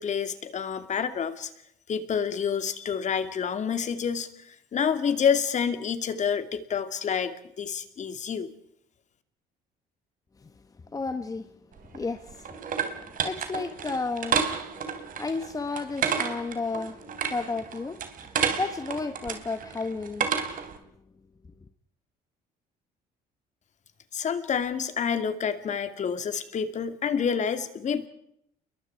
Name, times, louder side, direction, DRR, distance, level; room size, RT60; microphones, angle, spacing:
voice 1, 0.0-1.5 1.9-4.3 4.7-8.5 24.1-28.1, left 7 dB, 45° left, 2.5 m, -28 dB
voice 2, 10.9-11.5 11.9-14.4 15.2-17.0 17.3-20.3, left 3 dB, 20° left, 1.4 m, -33 dB
sound 1, 11.8-20.8, right 7 dB, 55° right, 3.5 m, -31 dB
29.5 x 22.5 x 4.7 m
cardioid pair, 110°, 17 cm